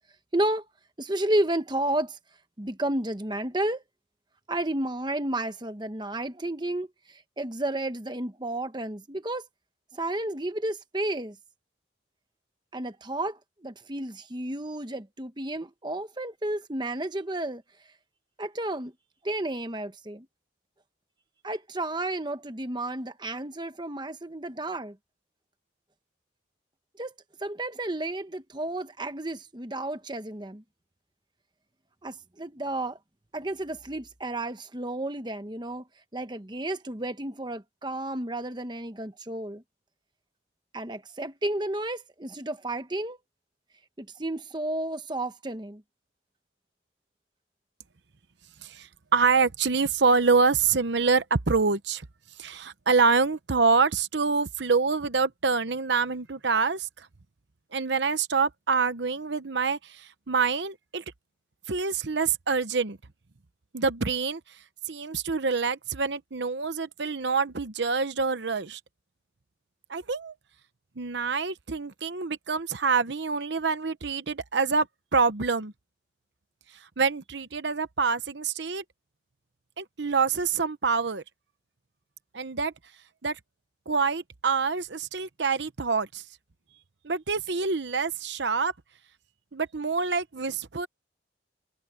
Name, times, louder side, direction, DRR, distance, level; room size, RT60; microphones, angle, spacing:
voice 1, 0.3-0.7 1.0-2.2 2.6-3.8 4.5-9.5 9.9-11.4 12.7-17.6 18.4-18.9 19.2-20.3 21.4-25.0 27.0-27.1 27.4-30.6 32.0-33.0 33.3-35.8 36.1-39.6 40.7-43.2 44.0-45.8, right 1 dB, 25° right, 1.1 m, -32 dB
voice 2, 48.6-52.1 52.4-57.1 57.7-61.0 61.7-63.0 63.7-64.6 64.9-68.8 69.9-70.3 71.0-74.9 75.1-75.7 76.7-78.8 79.8-81.2 82.3-82.7 83.2-83.4 83.9-86.2 87.0-88.7 89.5-90.9, right 4 dB, 65° right, 0.9 m, -26 dB
head